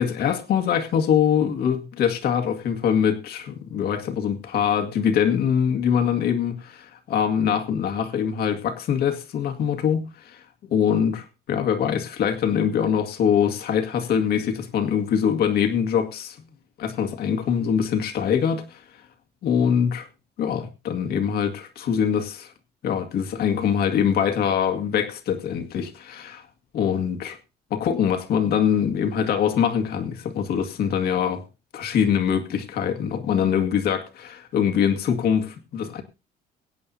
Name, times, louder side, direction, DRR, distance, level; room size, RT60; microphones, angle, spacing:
voice 1, 0.0-10.4 10.7-16.4 16.8-18.8 19.4-20.1 20.4-22.5 22.8-26.4 26.7-27.4 27.7-31.4 31.7-36.0, left 8 dB, 65° left, 2.0 m, -23 dB
23.5 x 8.7 x 2.8 m
cardioid pair, 110°, 17 cm